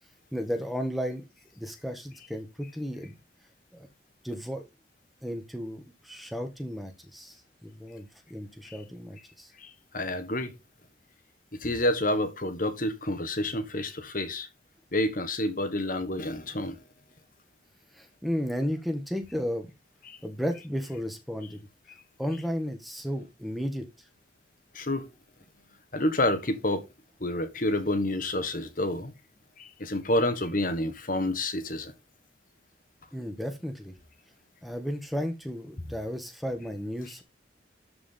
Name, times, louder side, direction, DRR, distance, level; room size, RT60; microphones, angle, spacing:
voice 1, 0.3-1.2 1.6-3.1 3.7-3.9 4.2-4.6 5.2-7.4 7.6-9.5 18.0-19.7 20.2-21.6 22.2-23.9 33.1-33.9 34.6-37.2, equal, ahead, 1.7 m, -33 dB
voice 2, 9.6-10.6 11.6-14.5 14.9-16.8 20.1-20.2 24.7-25.1 25.9-26.9 27.2-29.1 29.6-31.9, left 1 dB, 50° left, 1.5 m, -29 dB
12.5 x 4.9 x 3.9 m
head